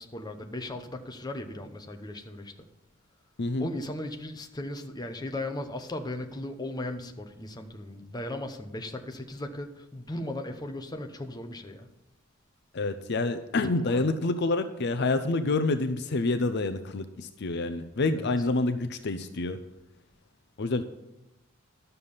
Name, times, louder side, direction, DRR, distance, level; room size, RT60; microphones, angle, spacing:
voice 1, 0.0-2.7 3.6-11.9 13.8-14.1 18.1-18.3, left 1 dB, 20° left, 5 dB, 0.9 m, -37 dB
voice 2, 12.7-19.6 20.6-20.8, left 3 dB, 55° left, 9 dB, 0.6 m, -27 dB
11.5 x 6.8 x 5.5 m, 0.95 s
head